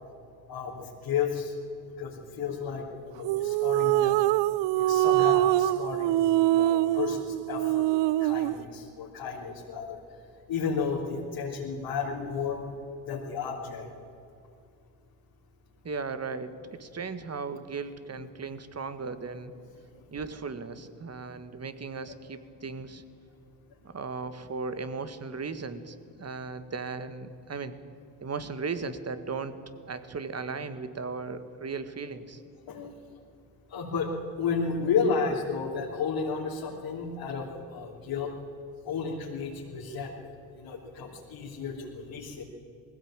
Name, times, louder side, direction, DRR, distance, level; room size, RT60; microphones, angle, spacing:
voice 1, 0.5-1.5 2.0-4.2 4.7-7.9 8.2-10.0 10.5-12.7 13.1-13.9 19.9-20.1 32.7-32.9 33.7-34.1 34.4-38.3 38.8-42.4, left 5 dB, 65° left, -5 dB, 3.5 m, -32 dB
sound 1, 3.2-8.6, right 15 dB, 65° right, 0.6 m, -24 dB
voice 2, 15.8-19.5 20.1-23.0 23.8-27.7 28.2-29.5 29.9-32.4, right 4 dB, 35° right, 11 dB, 1.8 m, -36 dB
20.0 x 16.0 x 9.0 m, 2.5 s
supercardioid pair, 65°, 46 cm